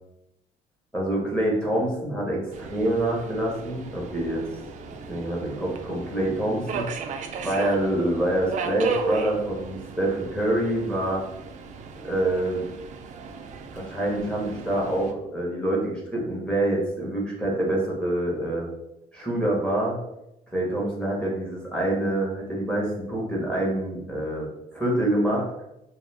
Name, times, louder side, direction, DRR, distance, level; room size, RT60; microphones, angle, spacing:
voice 1, 0.9-4.4 5.1-7.1 7.4-11.2 12.0-12.7 13.7-18.7 19.1-20.0 20.5-25.5, right 1 dB, 5° left, -3 dB, 0.9 m, -26 dB
Subway metro underground, 2.5-15.1, right 4 dB, 45° right, 0.4 m, -36 dB
2.3 x 2.3 x 3.2 m, 0.87 s
cardioid pair, 110°, 17 cm